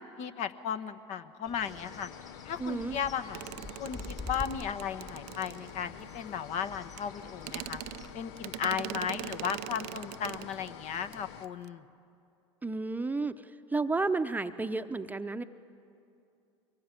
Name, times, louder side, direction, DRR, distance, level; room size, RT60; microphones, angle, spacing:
voice 1, 0.2-2.1 2.4-3.4 3.8-7.8 8.1-11.8, left 8 dB, 50° left, 10 dB, 1.2 m, -35 dB
Bird, 1.5-8.1, left 3 dB, 25° left, 2.1 m, -47 dB
sound 1, 1.6-11.5, left 10 dB, 70° left, 0.8 m, -48 dB
voice 2, 2.6-3.0 12.6-13.4 13.7-15.4, right 3 dB, 10° right, 9 dB, 0.8 m, -31 dB
sound 2, 3.3-6.1 7.0-7.1 7.4-10.7 11.0-11.2 11.4-11.7, right 19 dB, 60° right, 0.5 m, -42 dB
23.5 x 21.0 x 9.2 m, 2.6 s
hypercardioid pair, 80°, 15 cm